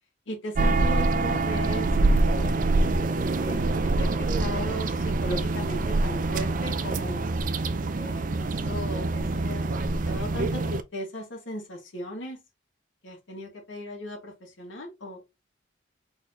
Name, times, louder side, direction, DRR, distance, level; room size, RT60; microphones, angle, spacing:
voice 1, 0.3-2.6 3.4-7.3 7.9-12.4 13.0-15.2, equal, 85° left, 2.0 m, -37 dB
sound 1, 0.5-10.8, right 2 dB, 45° right, 0.4 m, -25 dB
4.3 x 4.0 x 2.9 m
head